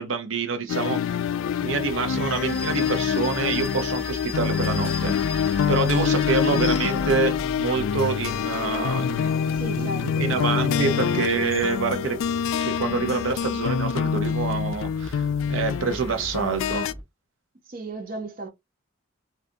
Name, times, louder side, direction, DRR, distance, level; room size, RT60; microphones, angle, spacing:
voice 1, 0.0-1.3 1.6-9.9 10.2-12.2 12.6-16.9, right 4 dB, 80° right, 0.6 m, -27 dB
sound 1, 0.7-16.9, left 7 dB, 85° left, 0.3 m, -26 dB
sound 2, 1.1-17.0, equal, 25° left, 1.8 m, -41 dB
sound 3, 2.1-7.4 7.8-12.1, left 4 dB, 50° left, 0.8 m, -39 dB
voice 2, 9.5-11.8 12.1-12.2 17.7-18.5, right 3 dB, 45° right, 0.7 m, -36 dB
3.6 x 2.4 x 2.6 m
head